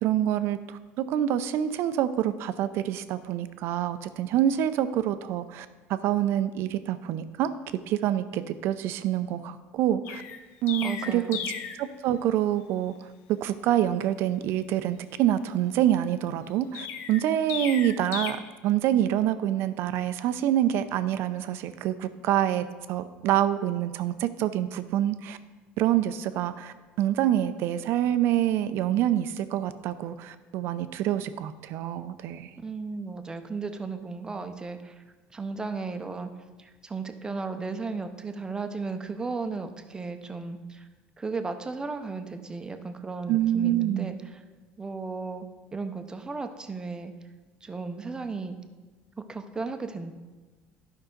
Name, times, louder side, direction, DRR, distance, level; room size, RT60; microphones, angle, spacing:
voice 1, 0.0-7.5 7.9-10.2 10.6-11.4 11.8-12.9 13.4-18.4 18.6-25.4 25.8-32.5 43.3-44.1, right 11 dB, 60° right, 12 dB, 0.5 m, -26 dB
Chirp tweet, 10.0-11.8 16.7-18.3, left 8 dB, 70° left, 0.7 m, -35 dB
voice 2, 10.8-11.5 32.6-35.0 35.3-36.3 36.6-40.9 41.2-44.4 44.8-47.1 47.6-48.6 49.2-50.1, right 4 dB, 15° right, 8 dB, 0.7 m, -35 dB
11.5 x 5.5 x 3.8 m, 1.3 s
cardioid pair, 120°, 5 cm